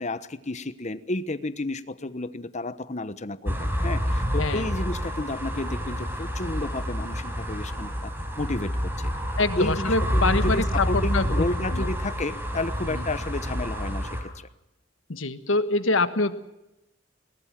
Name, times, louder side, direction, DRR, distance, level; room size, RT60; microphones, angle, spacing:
voice 1, 0.0-8.1 8.4-9.1 9.6-14.5, left 2 dB, 35° left, 14 dB, 1.1 m, -31 dB
sound 1, 3.5-14.2, equal, 10° right, 4.6 m, -28 dB
voice 2, 9.4-11.5 11.7-11.9 12.9-13.1 15.1-16.3, left 3 dB, 75° left, 12 dB, 1.4 m, -25 dB
21.5 x 20.0 x 7.6 m, 0.92 s
head